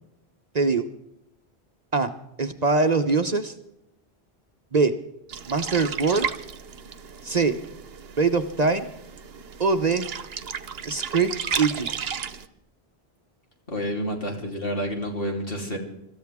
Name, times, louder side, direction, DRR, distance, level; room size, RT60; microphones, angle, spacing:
voice 1, 0.5-0.9 1.9-2.1 2.4-3.5 4.7-4.9 5.5-6.3 7.2-7.5 8.2-8.9 9.6-10.1 10.8-11.3 11.6-11.9, right 4 dB, 40° right, 8 dB, 0.9 m, -22 dB
sound 1, 5.3-12.5, right 7 dB, 70° right, 1.1 m, -34 dB
voice 2, 13.7-15.8, equal, 65° left, 0 dB, 3.6 m, -29 dB
25.5 x 14.0 x 3.6 m, 0.83 s
omnidirectional pair, 1.1 m